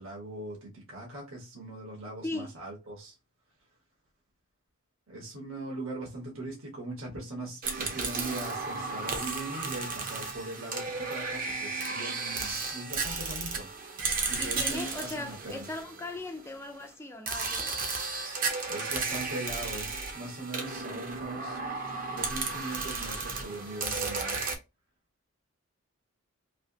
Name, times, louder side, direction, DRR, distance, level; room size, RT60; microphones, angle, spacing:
voice 1, 0.0-3.1 5.1-13.7 14.3-15.7 18.7-21.6 22.1-24.4, right 2 dB, 65° right, 1.3 m, -40 dB
voice 2, 2.2-2.6 14.4-17.8 20.7-21.0, left 2 dB, 10° left, 0.4 m, -39 dB
sound 1, 7.6-16.5 17.3-24.5, right 4 dB, 40° right, 0.7 m, -34 dB
3.3 x 2.8 x 2.7 m
head